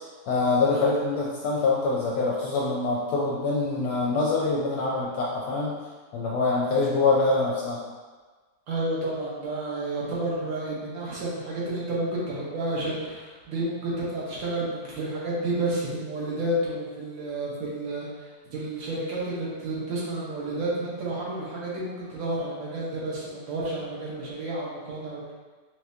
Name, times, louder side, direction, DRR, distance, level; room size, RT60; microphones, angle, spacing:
voice 1, 0.3-5.8 6.1-7.8, left 3 dB, 75° left, -4 dB, 0.9 m, -25 dB
voice 2, 8.7-18.1 18.5-25.3, right 1 dB, 80° right, -6 dB, 1.7 m, -30 dB
5.7 x 2.1 x 2.6 m, 1.4 s
omnidirectional pair, 2.0 m